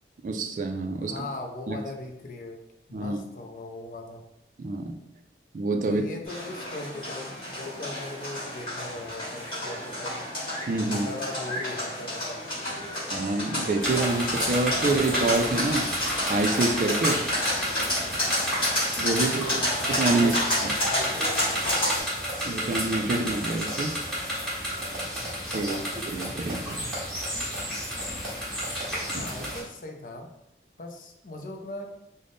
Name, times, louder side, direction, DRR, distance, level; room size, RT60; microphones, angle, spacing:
voice 1, 0.2-1.1 1.7-1.8 2.9-3.2 4.6-5.0 5.5-6.0 10.7-11.1 13.1-15.9 16.3-17.2 19.0-19.6 19.9-20.3 20.6-20.7 22.4-24.0 25.5-26.9 29.1-29.2, right 2 dB, 45° right, 4 dB, 0.3 m, -27 dB
voice 2, 1.0-2.6 2.9-4.2 5.9-10.2 10.9-12.4 19.2-20.6 20.9-21.8 25.5-26.0 29.1-30.3 30.8-31.9, left 2 dB, 50° left, 4 dB, 0.4 m, -39 dB
sound 1, 6.3-22.0, left 1 dB, 30° left, 1.4 m, -30 dB
sound 2, 13.8-29.6, equal, 5° left, 1.4 m, -31 dB
3.5 x 2.1 x 3.8 m, 0.83 s
head